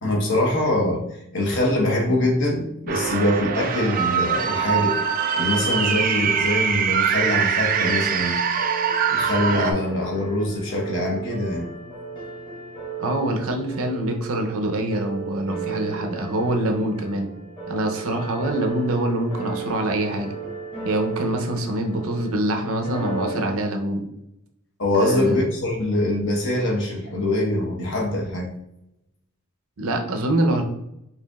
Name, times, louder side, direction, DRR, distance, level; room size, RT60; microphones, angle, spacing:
voice 1, 0.0-5.0 5.4-8.4 9.1-11.7 24.8-28.5, left 1 dB, 55° left, -2 dB, 1.0 m, -23 dB
sound 1, 2.9-9.7, right 7 dB, 40° right, 0.3 m, -23 dB
sound 2, 7.7-23.6, right 5 dB, 20° left, 1.1 m, -35 dB
voice 2, 13.0-17.3 17.7-20.3 20.8-24.1 24.9-25.4 29.8-30.6, right 1 dB, 75° right, 4 dB, 0.6 m, -25 dB
4.9 x 2.8 x 2.3 m, 0.83 s
head